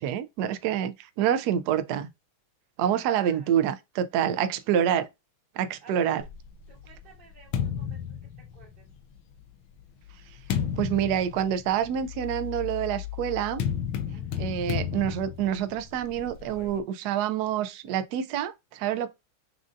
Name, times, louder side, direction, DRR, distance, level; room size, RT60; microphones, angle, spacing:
voice 1, 0.0-2.1 2.8-5.1 5.6-6.2 10.8-13.6 14.4-19.1, right 9 dB, 80° right, 0.9 m, -27 dB
voice 2, 2.8-3.5 4.5-4.6 5.8-6.3 6.7-8.9 14.1-14.5, right 5 dB, 60° right, 1.6 m, -53 dB
sound 1, 6.2-9.0 9.7-16.8, left 9 dB, 75° left, 1.4 m, -33 dB
6.3 x 2.5 x 2.4 m
omnidirectional pair, 2.3 m